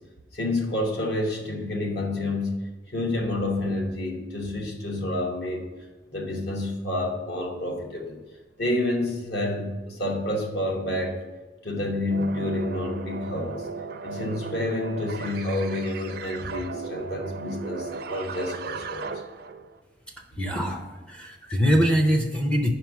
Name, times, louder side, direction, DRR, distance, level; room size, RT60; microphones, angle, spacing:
voice 1, 0.3-2.5 2.9-5.7 6.1-8.2 8.6-11.2 11.6-13.7 14.0-19.1, left 1 dB, 60° left, 1 dB, 1.2 m, -29 dB
sound 1, 12.1-19.8, right 5 dB, 55° right, 0.4 m, -36 dB
voice 2, 20.4-22.7, equal, 5° left, 2 dB, 0.4 m, -23 dB
5.3 x 4.4 x 6.0 m, 1.2 s
head